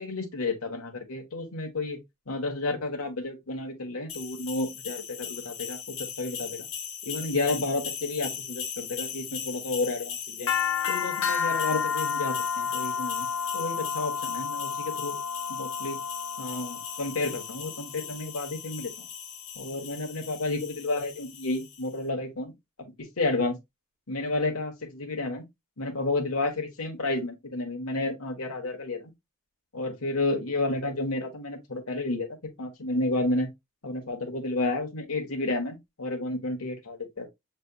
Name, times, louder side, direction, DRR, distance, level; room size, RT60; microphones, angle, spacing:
voice 1, 0.0-2.0 2.3-6.7 7.0-10.5 10.9-13.3 13.5-15.2 15.5-16.0 16.4-19.1 19.5-23.5 24.1-25.4 25.8-29.1 29.7-32.3 32.6-33.5 33.8-37.3, left 2 dB, 90° left, 1.2 m, -31 dB
sound 1, 4.1-21.8, left 7 dB, 70° left, 1.0 m, -33 dB
6.7 x 3.3 x 2.3 m
head